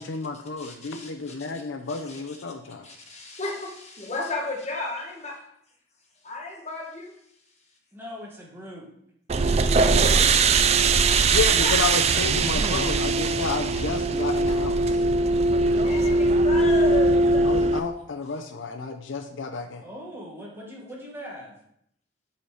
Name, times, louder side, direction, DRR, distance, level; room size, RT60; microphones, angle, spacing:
voice 1, 0.0-2.9 11.3-15.0 17.4-19.8, left 4 dB, 65° left, 7 dB, 0.5 m, -31 dB
voice 2, 0.6-1.6 1.9-2.4 2.8-5.4 6.2-7.1 11.6-11.7 15.5-17.5, left 2 dB, 35° left, -1 dB, 1.4 m, -34 dB
voice 3, 7.9-8.9 15.8-16.2 19.8-21.6, equal, 10° right, -3 dB, 1.5 m, -41 dB
sound 1, 9.3-17.8, right 3 dB, 30° right, 0.3 m, -21 dB
5.7 x 5.7 x 4.8 m, 0.72 s
head